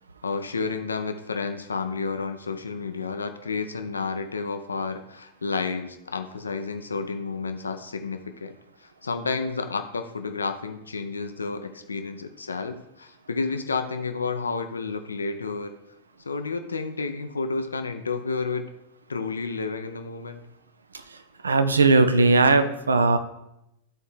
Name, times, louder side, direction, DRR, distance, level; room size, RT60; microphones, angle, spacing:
voice 1, 0.2-15.7 16.2-18.7 19.1-20.5, left 4 dB, 75° left, 8 dB, 0.4 m, -31 dB
voice 2, 20.9-23.2, right 3 dB, 75° right, 10 dB, 0.5 m, -19 dB
12.5 x 4.3 x 3.2 m, 0.85 s
figure-of-eight pair, 90°, 0 cm